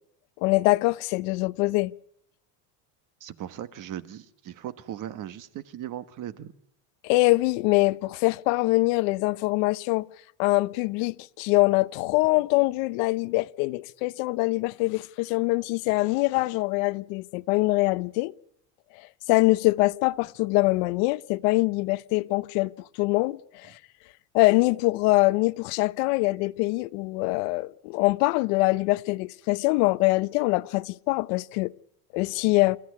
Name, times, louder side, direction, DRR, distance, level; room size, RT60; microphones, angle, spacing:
voice 1, 0.4-1.9 7.0-10.1 10.4-18.3 19.3-23.8 24.3-31.7 32.1-32.8, left 22 dB, 80° left, 0.9 m, -24 dB
voice 2, 3.2-6.5, right 11 dB, 45° right, 1.3 m, -38 dB
28.5 x 14.5 x 9.7 m
cardioid pair, 135°, 45 cm